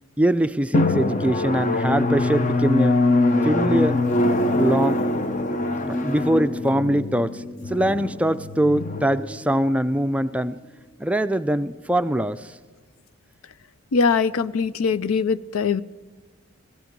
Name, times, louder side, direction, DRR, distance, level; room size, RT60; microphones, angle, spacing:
voice 1, 0.2-3.0 3.4-4.0 4.5-5.0 5.9-10.6 11.0-12.6, right 1 dB, 5° right, 11 dB, 0.4 m, -23 dB
Drum, 0.7-10.0, left 2 dB, 35° left, 0.8 m, -23 dB
voice 2, 13.9-15.8, left 5 dB, 90° left, 17 dB, 0.5 m, -22 dB
17.0 x 15.5 x 5.2 m, 1.4 s
head